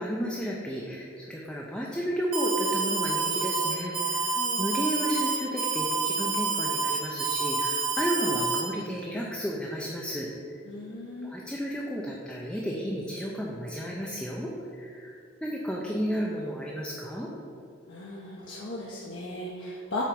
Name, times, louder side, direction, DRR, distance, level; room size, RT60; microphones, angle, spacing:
voice 1, 0.0-10.3 11.2-17.3, equal, 5° left, -3 dB, 0.5 m, -32 dB
Alarm, 2.3-8.6, right 4 dB, 85° right, 1.4 m, -28 dB
voice 2, 4.4-4.8 10.7-11.4 17.9-20.0, left 2 dB, 55° left, -5 dB, 0.8 m, -37 dB
7.5 x 4.5 x 5.2 m, 2.6 s
head